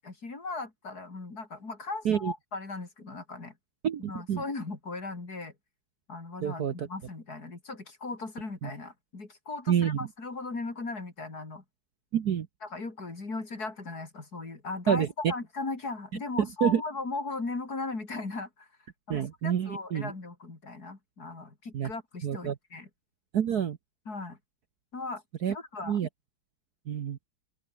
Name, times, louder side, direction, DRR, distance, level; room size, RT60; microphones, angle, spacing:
voice 1, 0.0-3.5 4.1-5.5 6.1-11.6 12.6-18.7 19.1-22.9 24.1-24.4 24.9-25.2 25.5-26.0, left 3 dB, 45° left, 4.3 m, -38 dB
voice 2, 3.8-4.4 6.4-6.9 8.6-8.7 9.7-10.0 12.1-12.5 14.9-15.1 16.6-16.8 19.1-20.1 21.7-21.9 22.2-22.5 23.3-23.8 25.4-25.5 25.9-26.1 26.9-27.2, right 9 dB, 55° right, 1.3 m, -27 dB
open air
omnidirectional pair, 2.4 m